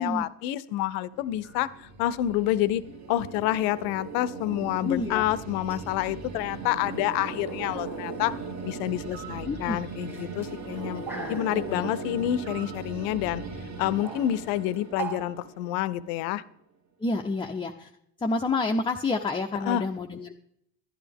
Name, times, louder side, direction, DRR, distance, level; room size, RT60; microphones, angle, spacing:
voice 1, 0.0-8.3 8.6-11.0 11.3-13.4 13.8-16.4 19.6-19.8, left 13 dB, 80° left, 18 dB, 0.6 m, -28 dB
sound 1, 1.1-16.2, right 4 dB, 35° right, 1.2 m, -39 dB
sound 2, 1.4-1.8 3.5-3.8 5.6-6.0 6.6-7.1 7.4-9.1 9.9-12.0 12.7-12.8 13.8-15.2, right 7 dB, 5° right, 0.9 m, -42 dB
voice 2, 4.8-5.2 9.4-9.9 10.7-11.9 17.0-17.9 18.2-20.3, left 3 dB, 10° left, 4 dB, 0.4 m, -29 dB
sound 3, 9.1-9.5 12.4-12.9, right 10 dB, 80° right, 1.0 m, -44 dB
11.0 x 10.0 x 3.5 m, 0.76 s
supercardioid pair, 75°, 47 cm